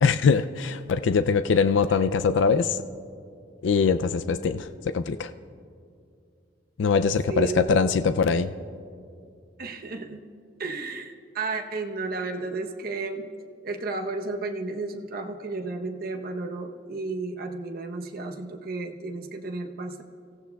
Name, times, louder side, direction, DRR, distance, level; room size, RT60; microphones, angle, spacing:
voice 1, 0.0-2.8 3.6-4.7 4.9-5.3 6.8-8.5, left 5 dB, 75° left, 10 dB, 0.4 m, -22 dB
voice 2, 7.3-7.9 9.6-10.2 10.6-13.3 13.6-20.0, right 3 dB, 50° right, 3 dB, 0.9 m, -33 dB
29.0 x 15.0 x 2.3 m, 2.4 s
head